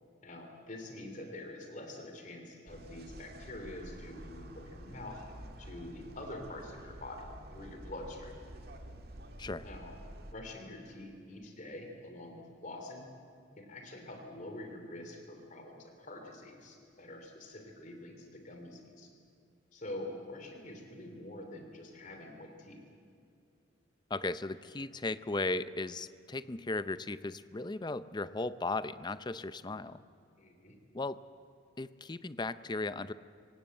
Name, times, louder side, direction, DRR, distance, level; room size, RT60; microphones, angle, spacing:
voice 1, 0.2-5.2 5.6-7.2 7.5-8.3 9.6-10.0 10.3-13.1 13.6-19.1 19.7-22.8 30.4-30.8, left 1 dB, 40° left, 4 dB, 3.0 m, -46 dB
sound 1, 2.7-10.3, right 1 dB, 55° right, 1.9 m, -49 dB
voice 2, 24.1-30.0 30.9-31.2 31.8-33.1, left 2 dB, 20° left, 14 dB, 0.5 m, -36 dB
25.5 x 18.0 x 7.8 m, 2.5 s
head